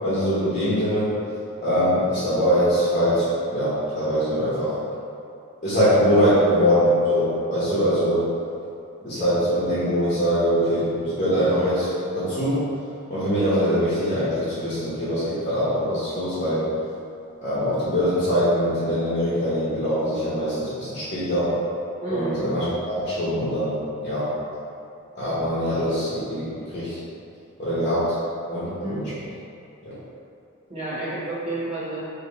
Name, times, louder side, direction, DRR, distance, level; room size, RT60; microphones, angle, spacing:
voice 1, 0.0-1.1 1.6-4.8 5.6-8.2 9.0-12.6 13.1-16.6 17.4-21.5 22.1-24.3 25.1-27.0 27.6-28.0 28.5-29.1 29.8-29.9, equal, 35° left, -12 dB, 1.0 m, -23 dB
voice 2, 22.0-22.5 28.8-29.0 30.7-32.0, right 2 dB, 30° right, -11 dB, 1.2 m, -30 dB
3.3 x 2.9 x 4.0 m, 2.7 s
head